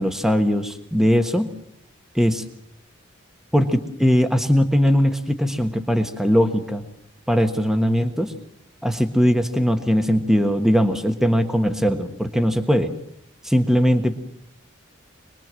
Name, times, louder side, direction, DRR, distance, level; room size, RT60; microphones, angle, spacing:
voice 1, 0.0-1.5 2.1-2.4 3.5-6.8 7.3-8.3 8.8-12.9 13.4-14.2, equal, ahead, 7 dB, 1.3 m, -20 dB
25.5 x 21.0 x 7.6 m, 0.70 s
head